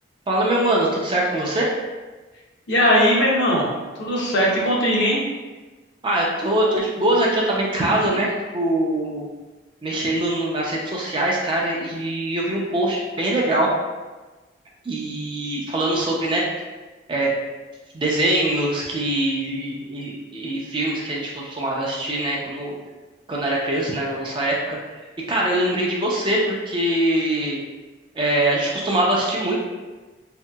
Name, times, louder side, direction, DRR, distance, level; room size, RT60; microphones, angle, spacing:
voice 1, 0.3-1.7 6.0-9.3 9.8-13.7 14.8-16.4 17.1-17.3 17.9-22.7 23.3-24.8 25.3-27.6 28.1-29.6, right 1 dB, 25° right, -3 dB, 0.4 m, -23 dB
voice 2, 2.7-3.7 4.0-5.2, equal, 65° left, -3 dB, 0.7 m, -19 dB
2.8 x 2.7 x 2.2 m, 1.2 s
head